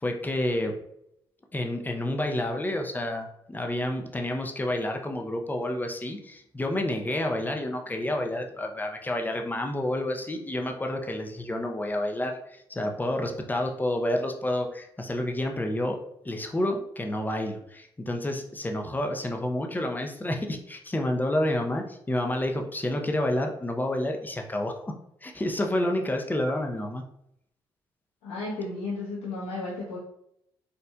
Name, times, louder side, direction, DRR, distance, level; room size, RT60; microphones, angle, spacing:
voice 1, 0.0-0.7 1.5-16.0 16.2-24.9 25.2-27.0, left 1 dB, 20° left, 3 dB, 0.6 m, -29 dB
voice 2, 28.2-30.0, left 3 dB, 85° left, -8 dB, 0.9 m, -33 dB
4.1 x 2.6 x 2.3 m, 0.74 s
supercardioid pair, 60°, 10 cm